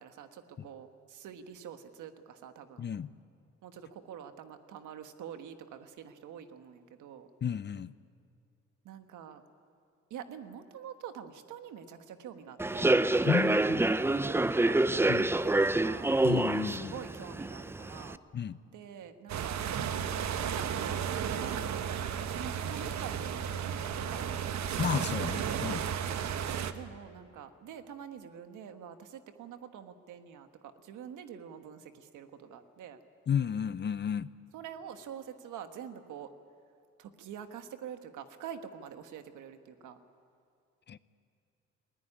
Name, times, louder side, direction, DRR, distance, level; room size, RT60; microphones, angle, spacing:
voice 1, 0.0-2.8 3.6-7.3 8.8-9.4 10.1-16.1 16.6-18.2 18.7-19.6 20.4-24.5 26.2-33.0 34.5-36.3 37.0-40.0, right 8 dB, 80° right, 8 dB, 1.5 m, -46 dB
voice 2, 2.8-3.1 7.4-7.9 13.3-13.8 15.1-15.3 16.2-16.9 18.3-18.6 24.8-25.8 33.3-34.3 40.9-41.0, left 8 dB, 35° left, 16 dB, 0.6 m, -32 dB
Human voice / Subway metro underground, 12.6-18.1, right 2 dB, 10° right, 0.5 m, -27 dB
sound 1, 19.3-26.7, right 8 dB, 65° right, 1.1 m, -33 dB
20.5 x 18.0 x 9.9 m, 2.4 s
cardioid pair, 90°, 30 cm